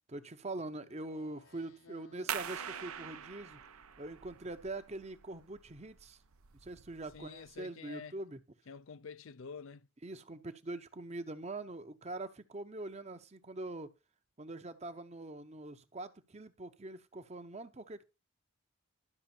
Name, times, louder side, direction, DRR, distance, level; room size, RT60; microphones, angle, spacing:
voice 1, 0.1-3.6 4.0-6.2 6.6-8.4 10.0-13.9 14.4-18.1, right 2 dB, 30° right, 0.8 m, -43 dB
Speech synthesizer, 0.9-3.9, left 3 dB, 85° left, 1.4 m, -60 dB
sound 1, 2.3-7.6, right 9 dB, 85° right, 0.8 m, -44 dB
voice 2, 7.1-8.2 8.7-9.9, left 5 dB, 65° left, 0.5 m, -48 dB
12.0 x 6.1 x 4.4 m
head